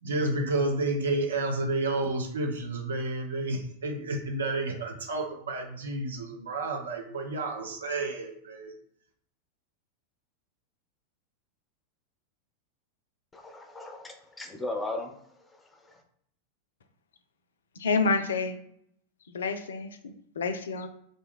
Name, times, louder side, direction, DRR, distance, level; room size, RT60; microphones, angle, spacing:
voice 1, 0.0-8.7, right 2 dB, 65° right, 3 dB, 0.6 m, -30 dB
voice 2, 13.3-16.0, left 2 dB, 10° left, 4 dB, 0.5 m, -38 dB
voice 3, 17.8-18.6 19.3-20.9, left 4 dB, 65° left, 8 dB, 0.3 m, -29 dB
2.5 x 2.2 x 3.5 m, 0.69 s
figure-of-eight pair, 90°, 0 cm